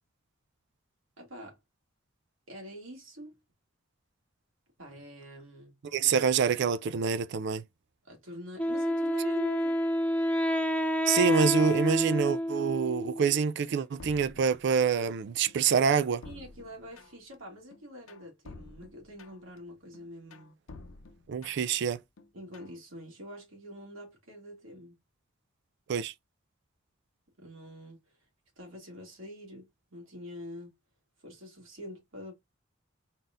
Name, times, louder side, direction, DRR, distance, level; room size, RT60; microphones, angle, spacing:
voice 1, 1.2-1.6 2.5-3.3 4.8-5.8 8.0-9.8 16.2-20.6 22.3-25.0 27.4-28.0 28.6-30.8 31.2-32.3, equal, 80° right, 2.3 m, -45 dB
voice 2, 5.9-7.6 11.1-16.2 21.3-22.0 25.9-26.1, right 6 dB, 60° right, 0.4 m, -26 dB
Wind instrument woodwind instrument, 8.6-13.4, equal, 5° left, 0.4 m, -29 dB
sound 1, 14.0-15.1 15.5-17.4 17.7-19.6 19.9-21.8 22.2-22.8, left 3 dB, 85° left, 0.7 m, -50 dB
4.0 x 4.0 x 2.5 m
head